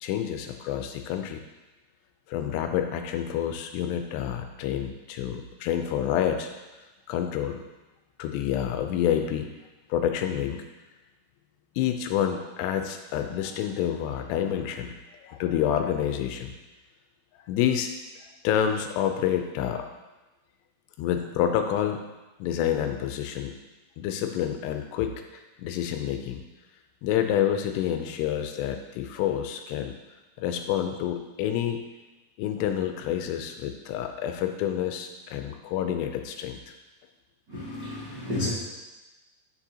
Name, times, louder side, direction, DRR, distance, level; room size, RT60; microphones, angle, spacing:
voice 1, 0.0-1.4 2.3-6.5 7.1-7.6 8.2-9.5 9.9-10.6 11.8-16.5 17.5-17.9 18.4-19.9 21.0-22.1 22.4-23.6 24.0-26.4 27.0-30.0 30.4-31.8 32.4-36.7, left 10 dB, 85° left, 6 dB, 2.6 m, -28 dB
voice 2, 37.5-38.5, left 2 dB, 75° right, -10 dB, 1.0 m, -32 dB
9.8 x 6.7 x 2.8 m, 1.1 s
omnidirectional pair, 4.9 m